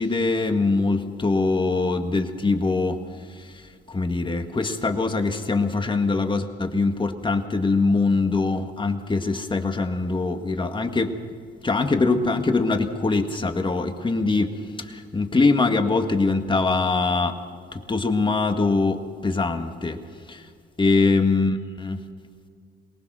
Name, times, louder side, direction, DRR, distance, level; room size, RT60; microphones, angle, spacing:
voice 1, 0.0-3.0 3.3-11.2 11.6-17.4 17.7-20.0 20.3-20.5 20.8-22.0, left 3 dB, 25° left, 6 dB, 1.8 m, -23 dB
23.0 x 19.0 x 6.2 m, 2.1 s
cardioid pair, 90°, 20 cm